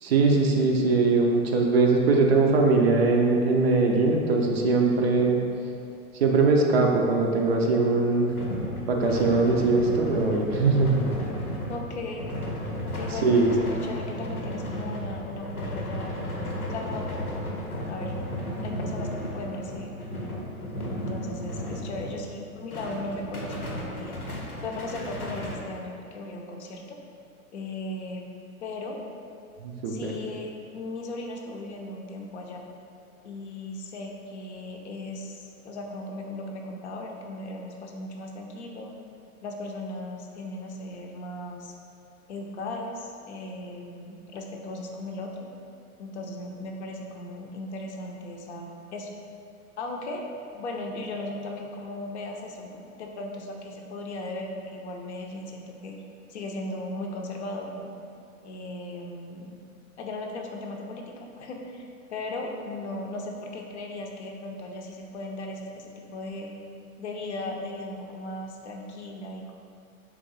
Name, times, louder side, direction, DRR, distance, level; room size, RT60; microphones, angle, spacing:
voice 1, 0.0-5.4 6.1-8.3 8.9-11.0 13.1-13.6 29.6-30.2, right 3 dB, 45° right, 1 dB, 0.5 m, -21 dB
sound 1, 8.2-22.3 22.7-25.5, equal, 90° left, 0.7 m, -34 dB
voice 2, 11.7-12.3 12.8-13.4 13.7-16.2 16.7-18.1 18.6-19.9 20.2-20.4 21.0-24.2 24.6-27.0 27.5-28.3 28.6-29.0 29.9-32.6 33.2-38.9 39.4-41.7 42.3-45.5 46.0-49.1 49.8-50.3 50.5-56.0 56.3-57.9 58.4-59.6 60.0-66.5 67.0-69.5, left 2 dB, 50° left, 1 dB, 0.5 m, -37 dB
3.4 x 2.9 x 3.9 m, 2.5 s
figure-of-eight pair, 100°, 44 cm